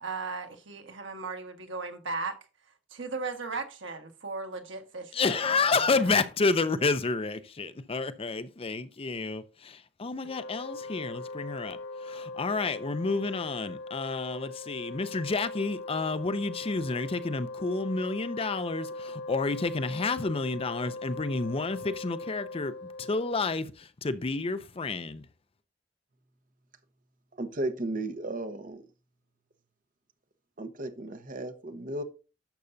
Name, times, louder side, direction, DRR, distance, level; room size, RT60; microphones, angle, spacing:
voice 1, 0.0-2.4 2.9-6.1, right 4 dB, 75° right, 1.5 m, -37 dB
voice 2, 5.1-11.8 12.1-22.7 23.0-23.7 24.0-25.2, left 3 dB, 30° left, 0.5 m, -30 dB
Wind instrument woodwind instrument, 10.2-23.6, left 3 dB, 65° left, 1.4 m, -40 dB
voice 3, 27.4-28.8 30.6-32.0, right 2 dB, 45° right, 1.0 m, -34 dB
11.5 x 6.8 x 2.7 m
head